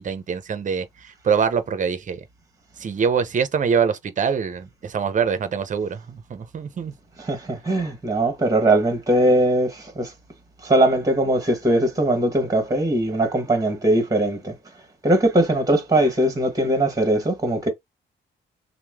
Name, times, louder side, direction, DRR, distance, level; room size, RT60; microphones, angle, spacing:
voice 1, 0.0-2.2 2.8-6.9, right 6 dB, 40° right, 0.6 m, -24 dB
voice 2, 7.3-10.1 10.6-14.5 15.0-17.7, right 1 dB, 15° right, 1.3 m, -20 dB
3.0 x 2.1 x 3.5 m
cardioid pair, 90°, 20 cm